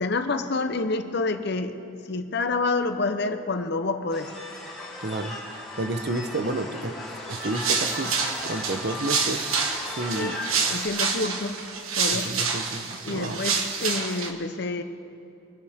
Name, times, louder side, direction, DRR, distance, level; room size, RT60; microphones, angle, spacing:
voice 1, 0.0-1.7 2.1-4.3 10.2-10.4 10.7-11.6 12.0-12.3 13.1-14.8, left 3 dB, 50° left, 8 dB, 0.8 m, -28 dB
sound 1, 4.1-10.9, left 1 dB, ahead, 3.3 m, -37 dB
voice 2, 5.0-8.1 8.4-9.5 10.0-10.4 10.7-10.8 12.1-13.4, right 2 dB, 50° right, 8 dB, 0.8 m, -31 dB
sound 2, 7.3-14.3, right 5 dB, 75° right, 1.4 m, -28 dB
24.0 x 11.5 x 3.6 m, 2.7 s
head